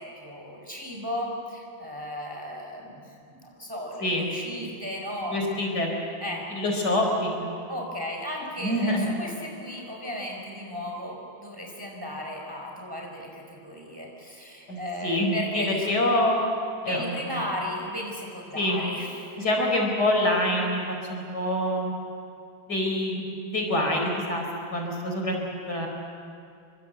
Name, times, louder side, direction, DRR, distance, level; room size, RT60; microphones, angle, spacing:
voice 1, 0.0-3.0 3.3-5.4 6.2-6.4 7.7-15.9 16.8-19.5, equal, 10° right, 0 dB, 5.0 m, -35 dB
voice 2, 5.3-5.9 6.5-7.5 8.6-9.1 14.7-16.4 16.8-17.2 18.5-18.8 19.4-21.9 22.7-25.9, left 1 dB, 50° left, 1 dB, 5.0 m, -26 dB
28.5 x 25.0 x 8.0 m, 2.4 s
omnidirectional pair, 2.2 m